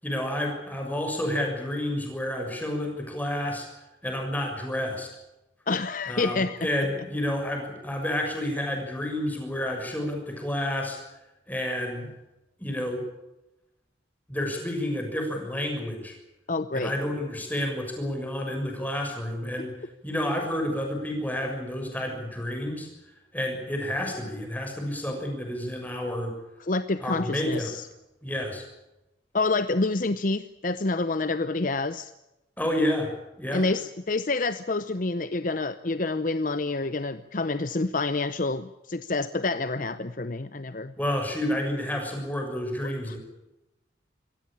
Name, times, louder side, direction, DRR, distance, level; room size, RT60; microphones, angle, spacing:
voice 1, 0.0-3.7 4.0-5.1 6.1-11.0 11.5-12.1 12.6-13.0 14.3-16.1 16.7-19.7 20.0-22.9 23.3-26.3 27.0-27.7 28.2-28.6 32.6-33.1 33.4-33.6 41.0-43.2, left 1 dB, 10° left, 3 dB, 6.6 m, -30 dB
voice 2, 5.7-6.7 16.5-16.9 26.7-27.9 29.3-32.1 33.5-40.9 43.1-43.2, left 3 dB, 45° left, 12 dB, 0.7 m, -28 dB
25.0 x 17.0 x 8.8 m, 0.95 s
head